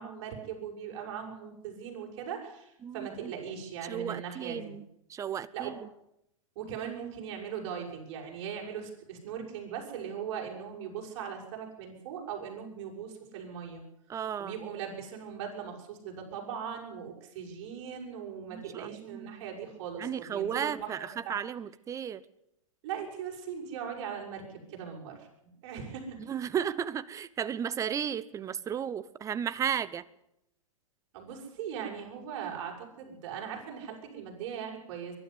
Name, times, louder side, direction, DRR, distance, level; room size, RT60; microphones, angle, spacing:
voice 1, 0.0-4.8 5.5-5.7 6.6-13.8 14.4-21.4 22.8-24.4 24.7-25.3 25.6-26.2 31.1-35.2, right 7 dB, 50° right, 0 dB, 7.1 m, -39 dB
voice 2, 2.8-3.3 3.9-5.9 14.1-14.6 18.5-19.4 20.0-22.2 26.3-30.0, right 8 dB, 20° right, 17 dB, 0.9 m, -34 dB
22.0 x 12.0 x 9.8 m, 0.79 s
hypercardioid pair, 115°, 18 cm